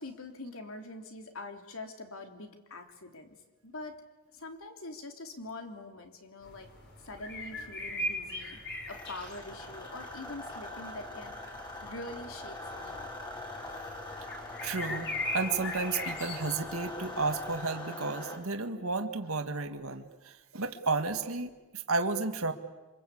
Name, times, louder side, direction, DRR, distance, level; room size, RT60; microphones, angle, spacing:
voice 1, 0.0-3.3 3.6-4.0 4.3-6.7 7.0-8.6 8.9-13.1, left 2 dB, 70° left, 5 dB, 3.2 m, -44 dB
sound 1, 6.4-17.6, left 1 dB, 50° left, 6.0 m, -41 dB
sound 2, 8.9-18.4, left 2 dB, 20° left, 4.6 m, -42 dB
voice 2, 14.6-15.1 15.3-22.5, right 3 dB, 75° right, 6 dB, 1.8 m, -32 dB
27.0 x 26.0 x 8.5 m, 1.2 s
head